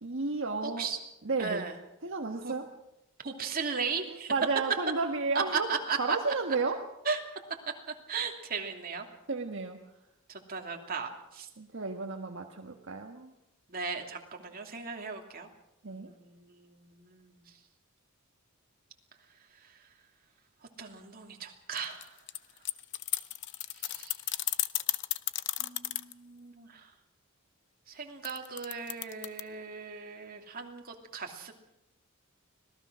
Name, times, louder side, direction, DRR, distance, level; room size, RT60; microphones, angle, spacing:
voice 1, 0.0-0.9 1.2-1.7 2.0-2.7 4.1-5.7 6.0-6.8 9.3-9.8 11.6-13.3 15.8-16.1, right 3 dB, 65° right, 3 dB, 1.5 m, -32 dB
voice 2, 0.6-1.0 1.4-1.7 2.4-2.5 3.2-4.3 5.7-6.2 7.1-7.2 8.1-9.1 10.3-11.5 13.7-15.5 15.9-17.4 20.8-22.2 23.8-24.1 25.6-26.9 27.9-31.5, right 5 dB, 45° right, 2 dB, 2.8 m, -37 dB
sound 1, 21.8-26.1 28.2-29.4, left 15 dB, 60° left, 0.8 m, -33 dB
25.5 x 18.5 x 6.3 m, 0.87 s
head